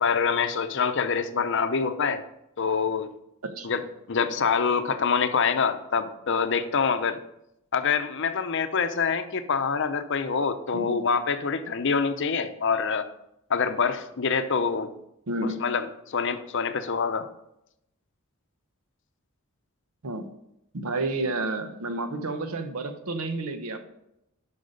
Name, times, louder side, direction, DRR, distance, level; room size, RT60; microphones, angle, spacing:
voice 1, 0.0-2.2 2.6-3.1 3.6-3.8 4.1-7.2 7.7-13.0 13.5-14.9 15.6-17.3, left 5 dB, 55° left, 10 dB, 0.6 m, -25 dB
voice 2, 15.3-15.6 20.0-20.3 20.7-23.8, right 2 dB, 80° right, 9 dB, 0.9 m, -30 dB
7.8 x 5.9 x 5.2 m, 0.83 s
head